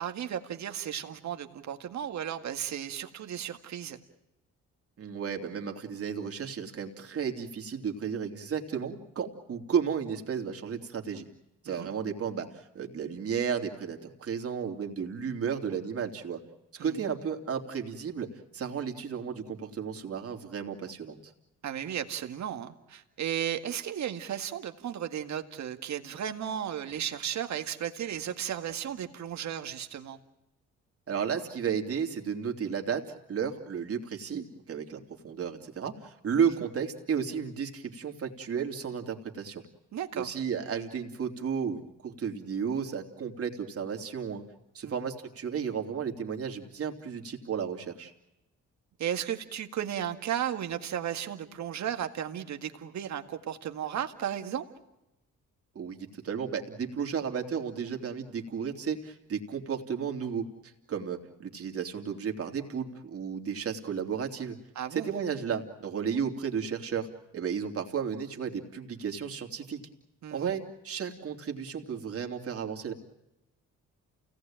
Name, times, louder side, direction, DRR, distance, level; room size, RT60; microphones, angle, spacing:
voice 1, 0.0-4.0 11.7-11.9 16.8-17.0 21.6-30.2 36.6-36.7 39.9-40.4 44.8-45.0 49.0-54.7 64.8-65.1 70.2-70.5, right 10 dB, 65° right, 7 dB, 2.1 m, -34 dB
voice 2, 5.0-11.3 11.6-16.4 16.7-21.2 31.1-39.6 40.1-44.4 44.7-48.1 55.7-64.6 64.9-67.1 67.3-69.8 70.3-72.9, right 7 dB, 50° right, 3 dB, 3.3 m, -33 dB
29.0 x 18.0 x 9.0 m, 0.93 s
cardioid pair, 90°, 30 cm